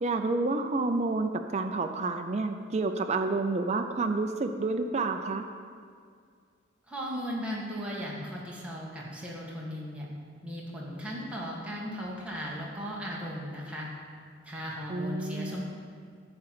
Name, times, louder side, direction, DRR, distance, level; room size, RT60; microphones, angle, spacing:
voice 1, 0.0-5.5 14.9-15.6, right 3 dB, 35° right, 6 dB, 0.4 m, -29 dB
voice 2, 6.9-10.1 10.4-13.9 14.4-15.6, equal, 5° right, -5 dB, 1.4 m, -37 dB
11.0 x 3.9 x 7.4 m, 2.1 s
head